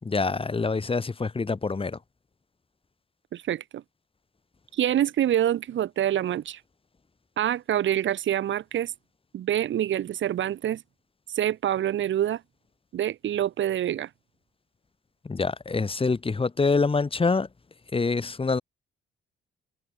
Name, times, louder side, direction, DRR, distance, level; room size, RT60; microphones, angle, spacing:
voice 1, 0.0-2.0 15.2-17.5 17.9-18.6, left 4 dB, 25° left, 6.0 m, -25 dB
voice 2, 3.3-3.8 4.7-6.6 7.4-8.9 9.3-10.8 11.3-12.4 12.9-14.1, right 11 dB, 70° right, 6.8 m, -26 dB
cardioid pair, 90°, 20 cm